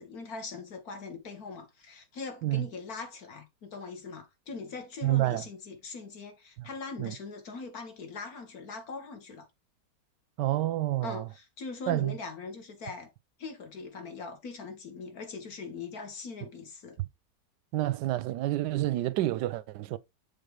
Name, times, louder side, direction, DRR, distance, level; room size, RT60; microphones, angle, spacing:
voice 1, 0.0-9.5 11.0-13.1 13.4-17.0, left 4 dB, 60° left, 2.1 m, -41 dB
voice 2, 5.0-5.4 6.6-6.7 7.0-7.1 10.4-11.2 11.9-12.1 17.7-20.0, right 15 dB, 90° right, 1.2 m, -28 dB
6.8 x 3.5 x 5.2 m
omnidirectional pair, 1.8 m